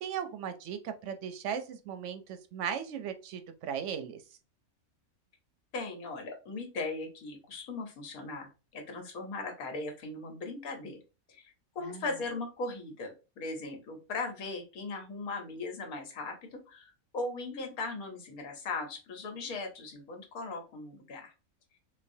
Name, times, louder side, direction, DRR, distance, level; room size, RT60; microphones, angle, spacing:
voice 1, 0.0-4.2 11.8-12.0, right 8 dB, 65° right, 8 dB, 0.8 m, -37 dB
voice 2, 5.7-11.0 11.3-21.3, left 3 dB, 80° left, 3 dB, 1.4 m, -38 dB
4.0 x 2.4 x 2.6 m, 0.31 s
omnidirectional pair, 1.5 m